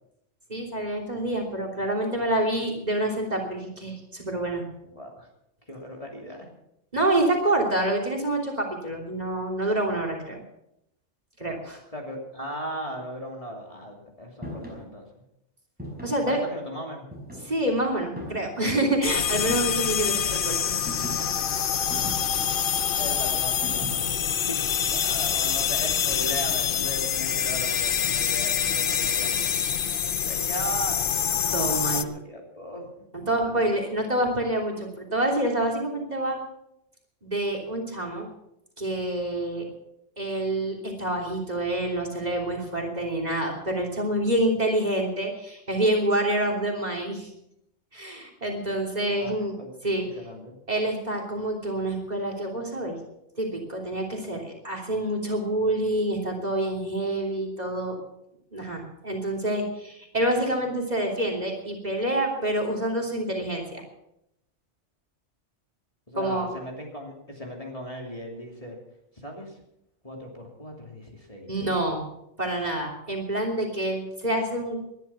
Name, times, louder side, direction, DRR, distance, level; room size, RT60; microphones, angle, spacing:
voice 1, 0.5-4.6 6.9-10.4 11.4-11.8 16.0-16.4 17.4-20.6 31.5-32.1 33.3-36.4 37.2-38.3 38.8-39.6 40.2-47.3 47.9-49.5 49.8-50.1 50.7-53.0 53.4-57.9 58.5-63.8 66.1-66.5 71.5-72.0 72.4-74.8, right 1 dB, 35° right, 2 dB, 3.3 m, -27 dB
voice 2, 4.8-5.3 5.7-6.5 11.9-15.1 16.1-17.1 22.9-29.5 30.0-31.1 31.8-34.0 49.1-49.7 50.0-50.5 66.1-68.8 69.1-69.6 70.0-71.5 72.6-72.7, equal, 30° left, 0 dB, 3.0 m, -38 dB
sound 1, 14.4-14.8 15.8-16.3 17.1-17.7 18.2-18.6 19.4-19.9 20.9-21.4 21.9-22.5 23.6-24.2, equal, 5° right, 5.5 m, -38 dB
sound 2, 19.0-32.0, left 8 dB, 55° left, 0.8 m, -26 dB
19.5 x 11.0 x 5.9 m, 0.81 s
omnidirectional pair, 1.2 m